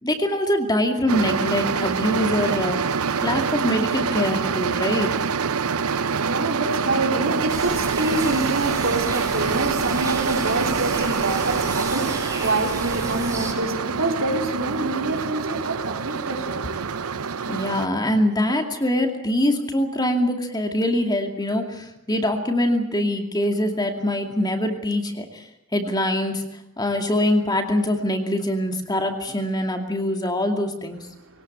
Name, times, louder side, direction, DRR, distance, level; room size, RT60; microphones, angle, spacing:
voice 1, 0.0-2.8 3.2-5.2 17.5-25.4 25.7-26.4 26.8-31.1, left 1 dB, 20° left, 4 dB, 2.5 m, -23 dB
sound 1, 1.1-17.9, right 5 dB, 85° right, 0.8 m, -25 dB
voice 2, 5.6-17.0, right 2 dB, 65° right, 2 dB, 4.1 m, -27 dB
sound 2, 7.5-13.5, right 3 dB, 15° right, 5.2 m, -33 dB
22.0 x 18.5 x 8.7 m, 0.85 s
head